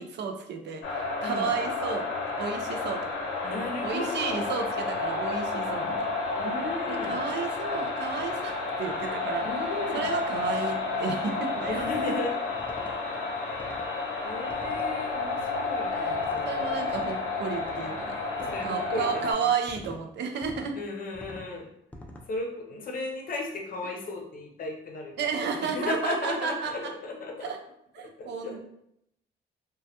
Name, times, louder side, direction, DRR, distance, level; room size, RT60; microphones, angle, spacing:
voice 1, 0.0-3.0 3.8-6.1 6.9-9.7 9.9-12.1 15.9-18.2 18.6-20.7 25.2-26.9 27.4-27.6 27.9-28.6, right 6 dB, 60° right, 4 dB, 0.4 m, -32 dB
sound 1, 0.8-19.3, left 3 dB, 85° left, 0.6 m, -31 dB
voice 2, 3.4-4.5 6.4-7.2 9.4-10.1 11.7-12.4 12.8-13.3 14.2-16.8 18.4-19.5 20.8-21.7 22.3-27.5 28.0-28.6, left 2 dB, 45° left, 0 dB, 0.6 m, -35 dB
sound 2, 8.1-8.4 8.8-9.1 9.6-9.9 10.3-10.6 11.7-12.1 12.6-13.0 13.5-13.9 14.5-14.9 16.1-16.5 16.9-17.2 17.6-17.9 18.4-18.7 19.7-20.0 20.4-20.7 21.1-21.5 21.9-22.3, left 1 dB, 5° left, 0.3 m, -46 dB
2.2 x 2.1 x 2.8 m, 0.76 s
cardioid pair, 90°, 20 cm